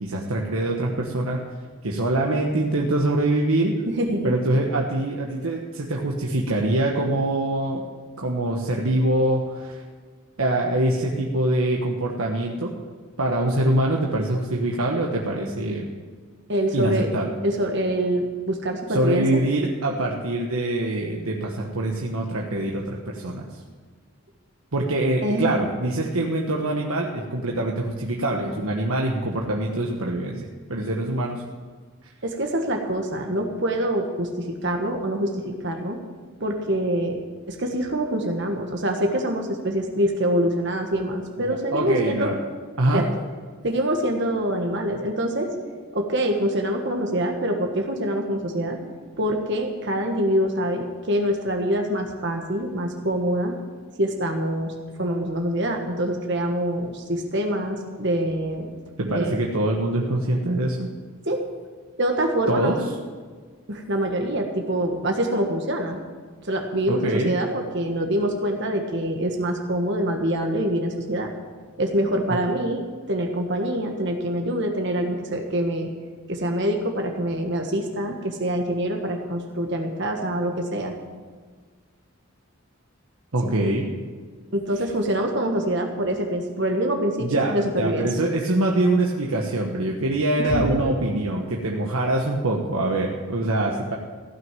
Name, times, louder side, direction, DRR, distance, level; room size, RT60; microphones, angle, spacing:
voice 1, 0.0-1.4 1.8-3.8 4.2-7.8 8.2-9.8 10.4-12.7 13.2-15.8 16.7-17.4 18.9-23.5 24.7-31.4 32.0-32.1 41.4-42.3 42.8-43.0 59.0-60.9 62.5-62.8 66.9-67.3 72.3-72.4 83.3-83.9 87.2-94.0, right 1 dB, 85° right, -1 dB, 1.3 m, -24 dB
voice 2, 3.9-4.3 16.5-17.1 17.4-19.4 25.2-25.7 32.2-36.0 36.4-37.2 37.5-42.3 42.9-43.1 43.6-45.5 45.9-48.8 49.2-53.5 54.0-58.7 59.1-59.4 61.2-61.4 62.0-62.7 63.7-66.0 66.4-71.3 71.8-72.8 73.1-75.9 76.3-80.9 83.4-83.5 84.5-88.1 90.4-90.8, right 1 dB, 55° right, 3 dB, 1.6 m, -25 dB
16.0 x 6.3 x 9.1 m, 1.5 s
head